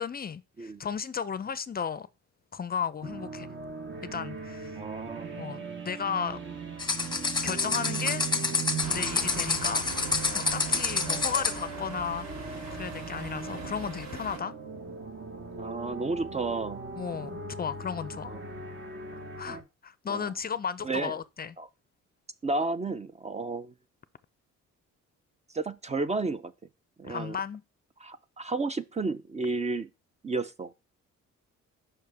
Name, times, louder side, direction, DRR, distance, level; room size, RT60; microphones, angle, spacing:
voice 1, 0.0-2.1 2.5-3.5 4.0-4.8 5.3-6.4 7.4-8.3 8.9-9.9 10.3-14.5 17.0-18.4 19.4-21.6 27.0-27.6, left 7 dB, 30° left, 0.5 m, -34 dB
sound 1, 3.0-19.6, right 5 dB, 40° right, 1.3 m, -39 dB
voice 2, 4.8-5.3 10.7-10.8 15.5-16.8 18.3-18.4 20.1-20.3 20.8-21.1 21.6-21.7 22.4-23.7 25.5-26.5 27.0-27.4 28.0-29.9 30.2-30.7, right 3 dB, 25° right, 0.5 m, -32 dB
sound 2, 6.8-11.6, left 4 dB, 15° left, 1.0 m, -28 dB
sound 3, 8.8-14.4, right 2 dB, 65° right, 2.3 m, -41 dB
6.5 x 5.6 x 3.4 m
cardioid pair, 90°, 30 cm